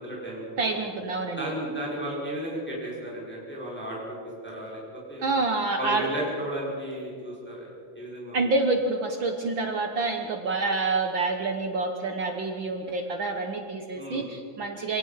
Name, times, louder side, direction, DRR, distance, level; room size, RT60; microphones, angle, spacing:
voice 1, 0.0-0.8 1.4-4.2 4.4-4.8 5.1-5.3 5.8-7.7 7.9-8.4 13.9-14.3, right 1 dB, 5° left, -5 dB, 4.8 m, -34 dB
voice 2, 0.6-1.5 5.2-6.1 8.3-15.0, right 3 dB, 85° right, 4 dB, 1.0 m, -27 dB
26.0 x 18.0 x 5.8 m, 2.3 s
omnidirectional pair, 4.1 m